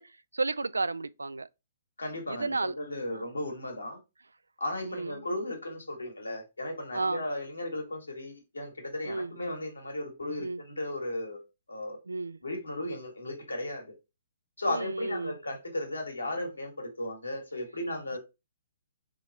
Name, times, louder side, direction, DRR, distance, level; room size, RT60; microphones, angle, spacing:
voice 1, 0.0-1.5 2.3-2.7 4.9-5.2 6.9-7.2 9.1-9.3 10.4-10.6 12.1-12.4 14.7-15.4, right 3 dB, 85° right, 0.3 m, -32 dB
voice 2, 2.0-4.0 4.6-11.4 11.7-12.0 12.4-13.9 14.6-18.2, left 1 dB, 85° left, 1.8 m, -35 dB
3.7 x 3.2 x 4.1 m
figure-of-eight pair, 130°, 0 cm